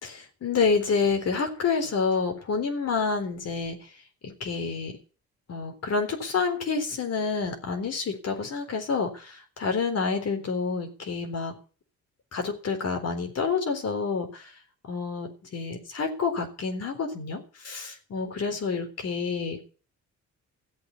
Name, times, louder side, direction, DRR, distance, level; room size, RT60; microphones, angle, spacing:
voice 1, 0.0-3.9 4.2-5.0 5.5-11.6 12.3-14.5 14.9-19.7, left 5 dB, 55° left, 5 dB, 3.8 m, -28 dB
14.5 x 7.8 x 8.3 m, 0.38 s
cardioid pair, 90°, 30 cm